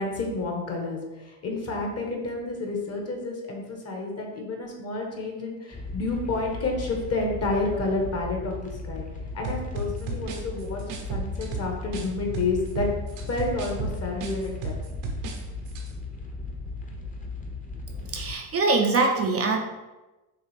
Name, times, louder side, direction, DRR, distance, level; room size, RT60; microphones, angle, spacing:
voice 1, 0.0-9.0 9.3-10.8 11.1-12.9 13.2-14.7, left 3 dB, 35° left, 1 dB, 1.1 m, -30 dB
sound 1, 5.7-18.4, left 3 dB, 20° left, 0.8 m, -37 dB
sound 2, 9.4-12.1 12.3-15.4 15.7-15.9, right 3 dB, 80° right, 1.0 m, -33 dB
voice 2, 18.0-19.6, right 3 dB, 35° right, 3 dB, 0.5 m, -23 dB
6.5 x 2.4 x 3.3 m, 1.1 s
cardioid pair, 110°, 44 cm